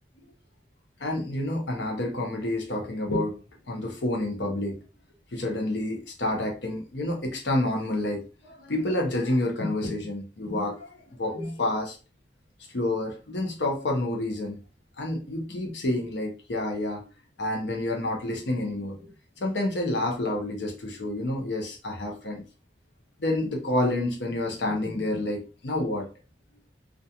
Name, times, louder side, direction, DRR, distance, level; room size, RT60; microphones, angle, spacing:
voice 1, 1.0-3.4 3.7-4.8 5.3-12.0 12.7-14.6 15.0-17.0 17.4-19.1 19.4-22.4 23.2-26.1, left 1 dB, 85° left, 1 dB, 0.7 m, -29 dB
2.4 x 2.3 x 2.7 m, 0.33 s
head